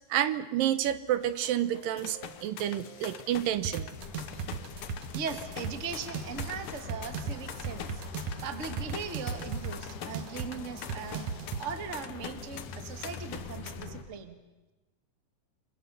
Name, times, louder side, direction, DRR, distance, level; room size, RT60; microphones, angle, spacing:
voice 1, 0.1-4.0, right 11 dB, 80° right, 13 dB, 2.7 m, -29 dB
sound 1, 1.2-13.9, left 9 dB, 85° left, 1.2 m, -45 dB
sound 2, 3.6-11.6, right 7 dB, 65° right, 2.1 m, -37 dB
sound 3, 4.0-14.0, left 4 dB, 65° left, 3.5 m, -44 dB
voice 2, 5.1-11.3 11.6-14.4, right 6 dB, 35° right, 7 dB, 1.3 m, -39 dB
29.5 x 23.0 x 6.9 m, 1.1 s
omnidirectional pair, 3.9 m